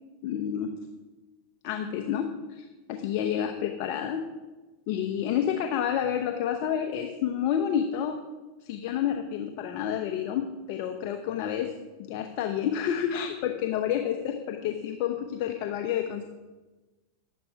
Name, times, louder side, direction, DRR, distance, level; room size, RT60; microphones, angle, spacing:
voice 1, 0.2-0.7 1.6-4.2 4.9-8.2 8.6-11.7 12.0-16.2, left 9 dB, 55° left, 5 dB, 0.9 m, -29 dB
11.0 x 8.6 x 4.7 m, 1.2 s
hypercardioid pair, 100°, 0 cm